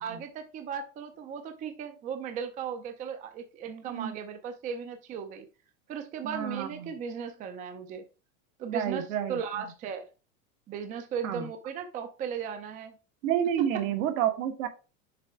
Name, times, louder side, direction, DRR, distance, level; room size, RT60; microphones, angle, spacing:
voice 1, 0.0-5.5 5.9-8.0 8.6-10.1 10.7-12.9, right 7 dB, 20° right, 7 dB, 0.5 m, -36 dB
voice 2, 6.2-6.9 8.7-9.4 11.2-11.5 13.2-14.7, right 10 dB, 70° right, 6 dB, 1.4 m, -29 dB
6.8 x 3.4 x 4.6 m, 0.32 s
supercardioid pair, 155°, 41 cm